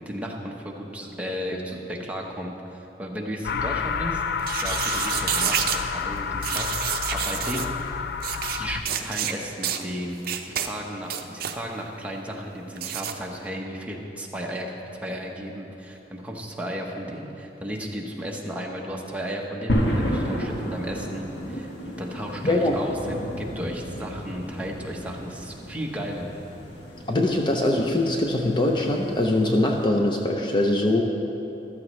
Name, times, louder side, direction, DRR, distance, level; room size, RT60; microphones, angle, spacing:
voice 1, 0.1-7.7 8.5-10.2 10.4-26.3, equal, 10° right, -1 dB, 1.0 m, -34 dB
sound 1, 3.4-8.8, left 6 dB, 60° left, 0.4 m, -29 dB
sound 2, 4.4-5.8 6.4-7.7 8.2-8.6 8.9-9.3 9.6-9.8 10.2-10.7 11.0-11.6 12.8-13.1, right 9 dB, 55° right, 0.6 m, -28 dB
sound 3, 19.7-29.9, equal, 80° left, 1.5 m, -32 dB
voice 2, 22.4-22.8 27.1-31.0, left 1 dB, 25° left, 2 dB, 0.7 m, -22 dB
14.0 x 12.5 x 3.2 m, 3.0 s
head